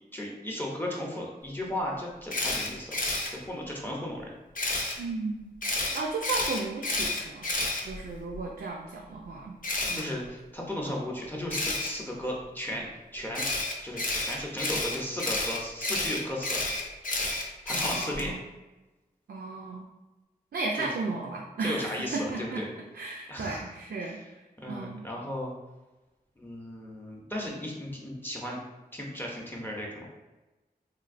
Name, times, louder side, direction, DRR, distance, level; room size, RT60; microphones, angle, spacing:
voice 1, 0.1-3.0 3.3-4.3 9.9-12.9 13.1-13.5 13.8-16.7 17.7-18.4 20.7-20.9 21.6-22.7 23.3-23.7 24.6-25.5 26.4-28.6 28.9-30.1, left 1 dB, 10° left, -2 dB, 0.6 m, -35 dB
Camera, 2.3-3.3 4.5-4.9 5.6-8.4 9.6-10.0 11.5-11.9 13.3-18.3, left 2 dB, 55° left, 0.6 m, -30 dB
voice 2, 5.0-5.5 5.9-7.5 7.8-9.5 9.8-10.1 17.7-18.5 19.3-19.9 20.5-22.6 22.9-24.2 24.7-25.0, right 3 dB, 80° right, -1 dB, 0.4 m, -34 dB
3.2 x 2.6 x 2.5 m, 1.1 s
wide cardioid pair, 65°, 17 cm